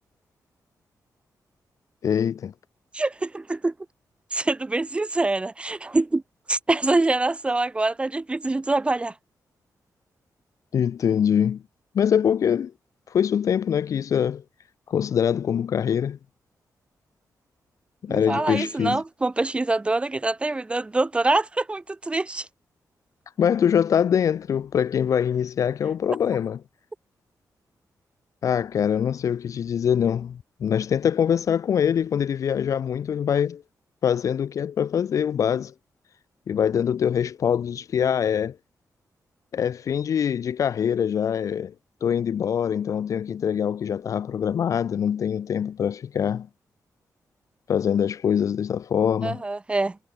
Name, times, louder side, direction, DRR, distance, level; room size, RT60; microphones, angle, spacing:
voice 1, 2.0-2.5 10.7-11.6 11.9-12.7 13.1-14.4 14.9-16.2 18.0-19.0 23.4-26.6 28.4-33.6 34.0-35.7 36.5-38.6 39.5-41.7 42.0-46.5 47.7-49.4, left 8 dB, 55° left, 0.4 m, -24 dB
voice 2, 2.9-3.7 4.3-6.2 6.5-9.1 18.1-22.5 49.2-50.0, right 2 dB, 15° right, 1.0 m, -25 dB
wide cardioid pair, 155°, 7 cm